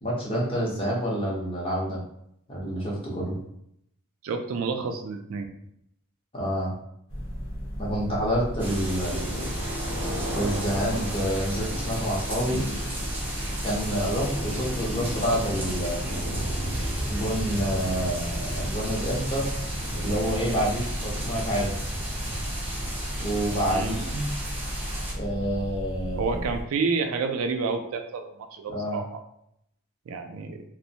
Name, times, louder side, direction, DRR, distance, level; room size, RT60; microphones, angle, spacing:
voice 1, 0.0-2.0 2.5-3.4 6.3-6.7 7.8-9.2 10.3-12.6 13.6-16.0 17.1-19.5 19.9-21.7 23.2-24.2 25.1-26.4 28.7-29.0, equal, 25° left, -4 dB, 0.7 m, -28 dB
voice 2, 4.2-5.5 23.7-24.0 26.2-29.2 30.1-30.6, right 4 dB, 80° right, 6 dB, 0.3 m, -29 dB
sound 1, 7.1-26.6, equal, 70° left, 0.8 m, -34 dB
sound 2, 8.6-25.1, right 1 dB, 10° right, 0.5 m, -33 dB
2.5 x 2.0 x 2.7 m, 0.74 s
head